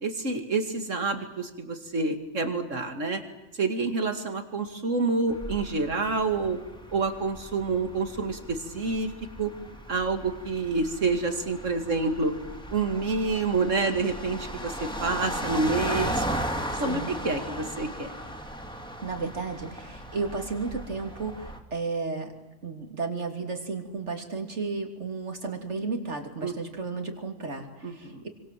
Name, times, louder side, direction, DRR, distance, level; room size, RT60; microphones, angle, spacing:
voice 1, 0.0-3.2 3.6-6.6 6.9-9.1 9.4-9.5 9.9-12.3 12.7-16.3 16.8-18.1 26.4-26.5 27.8-28.2, right 3 dB, 85° right, 7 dB, 2.8 m, -28 dB
sound 1, 5.3-21.6, equal, 5° left, 2.4 m, -36 dB
voice 2, 16.7-17.1 19.0-22.3 22.6-28.3, right 4 dB, 65° right, 5 dB, 3.3 m, -33 dB
27.0 x 25.0 x 7.6 m, 1.0 s
omnidirectional pair, 1.3 m